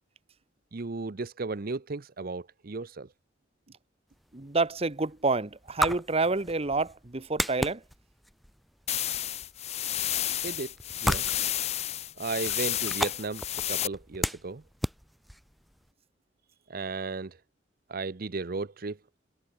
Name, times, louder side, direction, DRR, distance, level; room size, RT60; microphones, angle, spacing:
voice 1, 0.7-3.1 10.4-10.7 11.0-11.3 12.2-14.6 16.7-17.4 17.9-19.0, right 3 dB, 55° right, 0.8 m, -35 dB
sound 1, 4.1-15.9, equal, ahead, 0.8 m, -36 dB
voice 2, 4.3-7.8, right 3 dB, 35° right, 1.2 m, -28 dB
sound 2, 8.9-13.9, left 12 dB, 35° left, 0.4 m, -31 dB
head